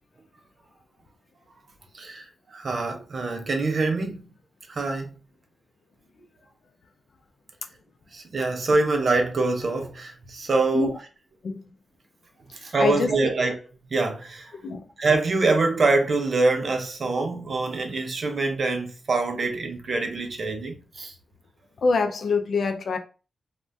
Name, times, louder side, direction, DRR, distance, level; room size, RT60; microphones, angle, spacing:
voice 1, 1.9-2.3 2.5-4.2 4.7-5.2 8.1-10.9 12.6-13.6 13.9-14.5 15.0-21.1, right 3 dB, 55° right, 0.6 m, -25 dB
voice 2, 12.6-13.1 14.6-14.9 21.8-23.0, left 4 dB, 70° left, 0.3 m, -25 dB
2.5 x 2.1 x 3.3 m
cardioid pair, 80°, 0 cm